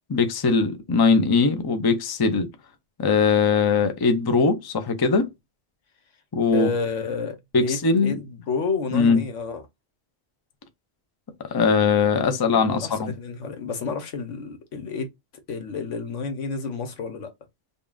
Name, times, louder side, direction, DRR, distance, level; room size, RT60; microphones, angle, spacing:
voice 1, 0.1-2.5 3.0-5.3 6.3-6.7 7.5-8.1 8.9-9.2 11.5-13.1, left 4 dB, 25° left, 0.5 m, -20 dB
voice 2, 6.5-9.6 12.5-15.1 15.5-17.3, left 5 dB, 85° left, 1.3 m, -30 dB
5.4 x 2.4 x 2.4 m
omnidirectional pair, 1.2 m